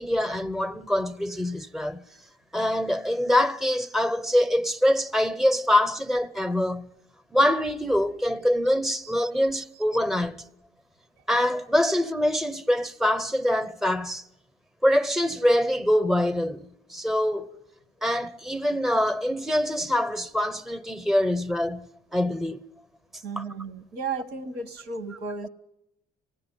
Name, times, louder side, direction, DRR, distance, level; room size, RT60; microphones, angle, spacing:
voice 1, 0.0-2.0 2.5-6.9 7.3-10.4 11.3-14.2 14.8-17.5 18.0-22.6 23.4-23.5, left 1 dB, ahead, 0.8 m, -24 dB
voice 2, 23.2-25.5, right 4 dB, 80° right, 1.4 m, -34 dB
20.0 x 16.0 x 8.2 m
cardioid pair, 110°, 17 cm